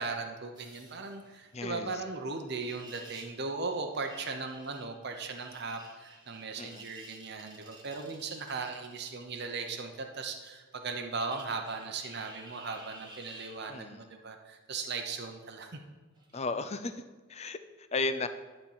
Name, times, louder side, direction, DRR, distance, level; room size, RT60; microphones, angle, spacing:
voice 1, 0.0-15.8, right 4 dB, 50° right, 4 dB, 0.8 m, -38 dB
sound 1, 0.5-1.6 2.5-3.4 3.7-9.2 11.2-13.8 16.2-16.4, right 2 dB, 20° right, 1.4 m, -53 dB
voice 2, 1.5-1.9 6.6-6.8 13.7-14.0 16.3-17.0 17.3-18.3, left 3 dB, 30° left, 11 dB, 0.5 m, -34 dB
11.0 x 4.4 x 7.2 m, 1.4 s
head